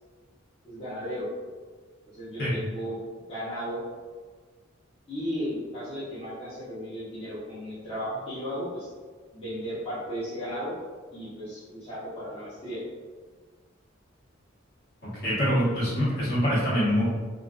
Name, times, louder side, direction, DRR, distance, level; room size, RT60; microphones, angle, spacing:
voice 1, 0.6-1.3 2.1-3.0 3.3-3.8 5.1-8.9 9.3-10.7 11.1-12.8, equal, 30° left, -12 dB, 0.9 m, -35 dB
voice 2, 15.2-17.0, equal, 55° left, -9 dB, 1.1 m, -24 dB
2.5 x 2.4 x 2.3 m, 1.5 s
head